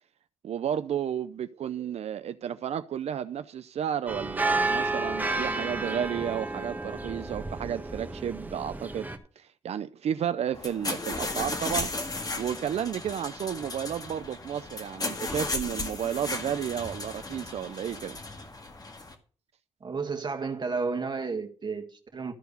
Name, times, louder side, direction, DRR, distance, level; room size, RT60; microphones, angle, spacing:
voice 1, 0.4-9.1 9.4-11.9 12.4-18.2, right 9 dB, 75° right, 0.5 m, -32 dB
sound 1, 4.1-9.2, right 2 dB, 15° right, 1.4 m, -31 dB
sound 2, 10.5-19.2, left 2 dB, 35° left, 1.8 m, -35 dB
voice 2, 19.8-22.3, right 4 dB, 40° right, 1.7 m, -32 dB
13.0 x 4.6 x 6.7 m
cardioid pair, 90°, 11 cm